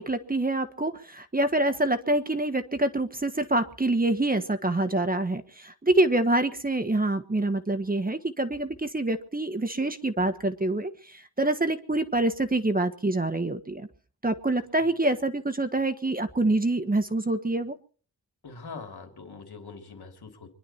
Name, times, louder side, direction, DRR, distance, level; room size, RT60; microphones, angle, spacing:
voice 1, 0.0-13.9 14.2-17.8, right 2 dB, 20° right, 9 dB, 1.3 m, -26 dB
voice 2, 18.4-20.6, left 4 dB, 70° left, 4 dB, 3.2 m, -43 dB
25.0 x 11.5 x 4.4 m, 0.42 s
wide cardioid pair, 95°, 40 cm